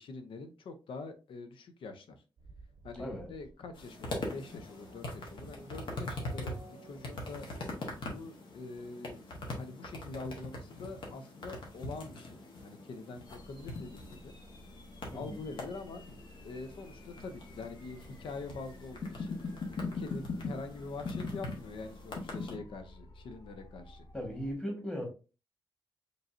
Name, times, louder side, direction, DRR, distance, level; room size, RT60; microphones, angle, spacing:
voice 1, 0.0-2.2 2.8-6.6 6.8-7.5 8.0-9.2 9.5-14.3 15.1-16.0 16.4-19.4 19.9-24.1, left 3 dB, 80° left, 0.7 m, -44 dB
Race car auto racing / Accelerating revving vroom, 2.4-7.6, right 3 dB, 60° right, 0.6 m, -55 dB
voice 2, 3.0-3.3 15.1-15.4 24.1-25.1, equal, 10° left, 1.5 m, -38 dB
sound 1, 3.8-22.6, left 2 dB, 65° left, 1.4 m, -42 dB
sound 2, 13.2-24.5, left 1 dB, 45° left, 1.0 m, -54 dB
5.1 x 3.1 x 2.6 m
wide cardioid pair, 160°, 9 cm